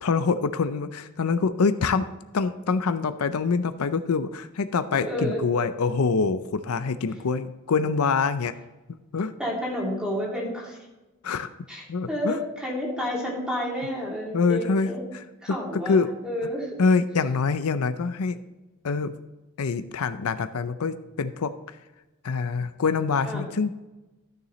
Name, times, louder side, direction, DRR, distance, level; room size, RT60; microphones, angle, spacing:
voice 1, 0.0-2.1 2.3-8.5 9.1-9.3 11.2-11.5 11.9-12.4 14.3-15.2 15.9-16.1 16.8-18.4 18.8-19.1 19.6-21.5 22.2-23.7, left 4 dB, 85° left, 12 dB, 0.5 m, -25 dB
voice 2, 5.1-5.4 9.4-10.8 11.7-15.0 15.4-16.0 16.2-16.7 23.2-23.4, equal, 5° right, -4 dB, 2.6 m, -30 dB
14.0 x 6.7 x 3.1 m, 1.1 s
head